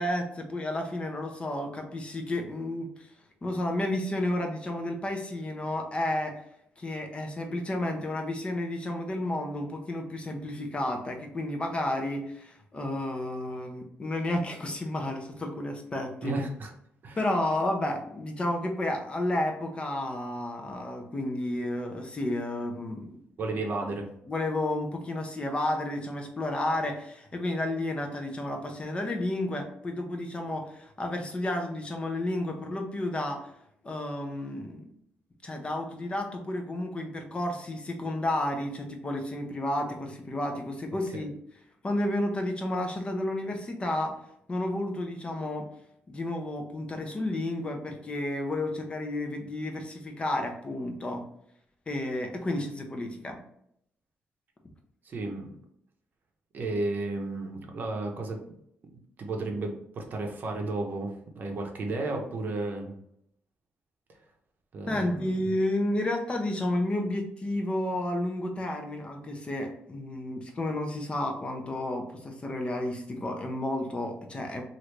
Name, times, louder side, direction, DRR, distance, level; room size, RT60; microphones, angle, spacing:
voice 1, 0.0-3.1 3.4-6.3 6.8-16.3 17.2-23.1 24.3-33.5 33.8-34.8 35.4-41.3 41.8-44.1 44.5-45.6 46.1-51.2 51.9-53.4 64.9-74.6, left 1 dB, 25° left, 3 dB, 0.6 m, -31 dB
voice 2, 16.2-16.7 17.0-17.2 23.4-24.1 41.1-41.2 55.0-55.5 56.5-58.4 59.2-63.0 64.7-65.5, right 2 dB, 50° right, 2 dB, 0.7 m, -33 dB
3.1 x 2.5 x 3.1 m, 0.73 s
cardioid pair, 110°, 4 cm